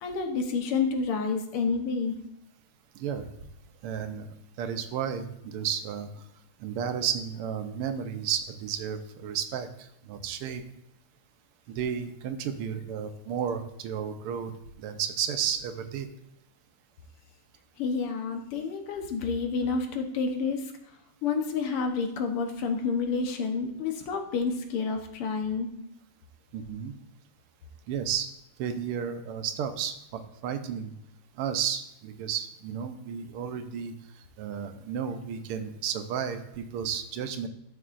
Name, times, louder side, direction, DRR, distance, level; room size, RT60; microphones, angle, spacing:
voice 1, 0.0-2.2 17.8-20.6 21.2-25.7, left 5 dB, 90° left, 5 dB, 2.0 m, -29 dB
voice 2, 3.8-4.3 4.6-6.1 6.6-10.6 11.7-14.5 14.8-16.1 26.5-26.9 27.9-28.3 28.6-30.9 31.4-33.9 34.4-37.5, right 8 dB, 90° right, 8 dB, 1.7 m, -32 dB
12.5 x 6.0 x 2.5 m, 0.80 s
omnidirectional pair, 2.4 m